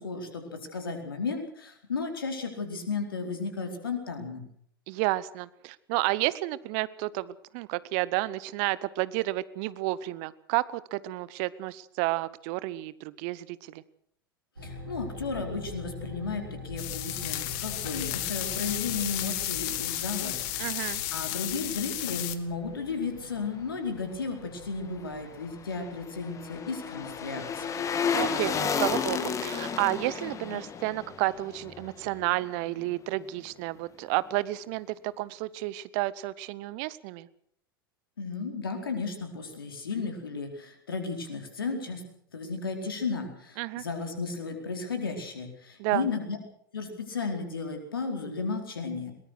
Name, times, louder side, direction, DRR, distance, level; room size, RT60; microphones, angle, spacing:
voice 1, 0.0-4.5 14.6-20.8 21.1-27.8 38.2-42.0 42.3-46.4 46.7-49.1, left 4 dB, 75° left, 5 dB, 4.5 m, -34 dB
voice 2, 4.9-13.8 20.6-21.0 28.1-37.3 43.6-43.8 45.8-46.1, right 18 dB, 50° right, 19 dB, 0.9 m, -31 dB
sound 1, 14.6-31.7, left 2 dB, 85° right, 7.9 m, -45 dB
sound 2, 16.8-22.4, left 15 dB, 50° left, 1.8 m, -33 dB
sound 3, 25.3-32.5 32.8-32.9, left 6 dB, 25° left, 2.4 m, -32 dB
22.0 x 19.5 x 6.5 m, 0.65 s
figure-of-eight pair, 85°, 12 cm